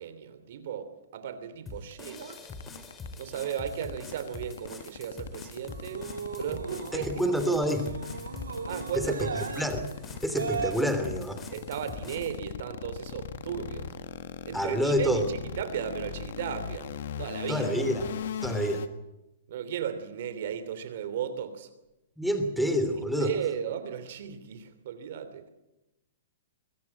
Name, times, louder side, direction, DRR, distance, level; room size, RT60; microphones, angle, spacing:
voice 1, 0.0-2.4 3.2-6.1 6.4-7.3 8.7-9.4 11.5-13.9 14.5-17.7 19.5-21.7 23.0-25.5, right 8 dB, 60° right, 11 dB, 3.0 m, -36 dB
sound 1, 1.7-12.4, left 3 dB, 20° left, 3.5 m, -45 dB
sound 2, 1.9-18.9, left 7 dB, 65° left, 1.6 m, -38 dB
sound 3, 5.7-10.7, right 5 dB, 90° right, 2.3 m, -37 dB
voice 2, 6.9-7.9 8.9-9.3 9.6-9.8 10.2-11.4 14.5-15.3 17.5-18.1 18.4-18.8 22.2-23.3, equal, ahead, 7 dB, 3.2 m, -27 dB
23.0 x 14.5 x 8.9 m, 0.95 s
hypercardioid pair, 125°, 0 cm